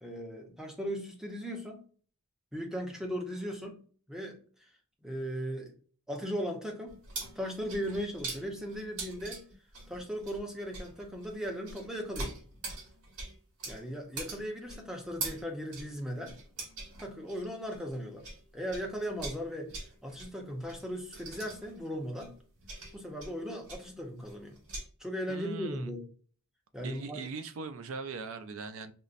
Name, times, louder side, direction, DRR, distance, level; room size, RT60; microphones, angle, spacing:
voice 1, 0.0-1.8 2.5-3.8 4.1-4.7 5.0-5.7 6.1-7.0 7.3-9.4 9.9-12.3 13.7-16.3 17.0-18.3 18.5-19.7 20.0-22.3 22.9-24.6 25.0-26.1 26.7-27.2, equal, ahead, 1 dB, 0.6 m, -37 dB
sound 1, 6.9-18.4 18.7-24.8, right 3 dB, 80° right, 1.3 m, -43 dB
voice 2, 25.3-25.9 26.8-28.9, right 4 dB, 65° right, 11 dB, 0.4 m, -40 dB
5.3 x 2.0 x 2.5 m, 0.42 s
head